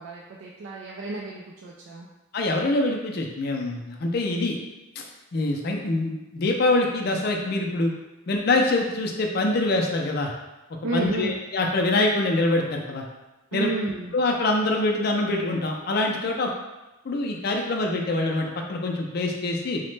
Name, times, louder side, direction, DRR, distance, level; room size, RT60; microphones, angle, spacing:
voice 1, 0.0-2.1 10.8-11.4 13.5-14.1, right 3 dB, 75° right, -2 dB, 0.3 m, -31 dB
voice 2, 2.3-4.5 5.3-7.9 8.3-10.3 10.9-13.0 13.5-13.7 14.1-16.5 17.1-19.8, left 2 dB, 50° left, 1 dB, 0.4 m, -24 dB
2.9 x 2.1 x 3.2 m, 1.0 s
head